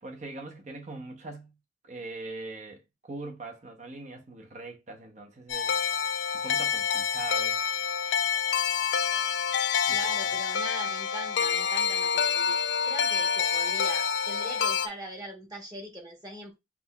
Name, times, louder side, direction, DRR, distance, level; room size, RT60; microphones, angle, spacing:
voice 1, 0.0-1.5 1.8-5.7 6.4-7.6 9.9-10.4, right 3 dB, 40° right, 0.8 m, -41 dB
sound 1, 5.5-14.9, left 7 dB, 85° left, 0.4 m, -27 dB
voice 2, 9.9-16.5, right 1 dB, 20° right, 1.2 m, -41 dB
6.0 x 2.8 x 2.3 m
head